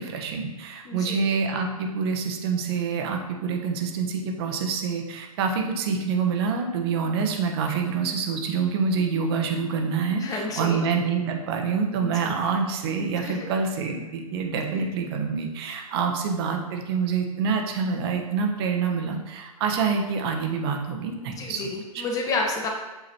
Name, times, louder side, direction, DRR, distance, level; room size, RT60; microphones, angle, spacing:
voice 1, 0.0-21.7 21.9-22.0, right 5 dB, 40° right, 3 dB, 1.2 m, -26 dB
voice 2, 0.8-1.2 10.2-10.8 12.0-12.3 13.2-13.5 14.5-14.8 21.2-22.7, left 3 dB, 20° left, 1 dB, 1.3 m, -31 dB
8.1 x 6.4 x 3.0 m, 1.1 s
figure-of-eight pair, 120°, 19 cm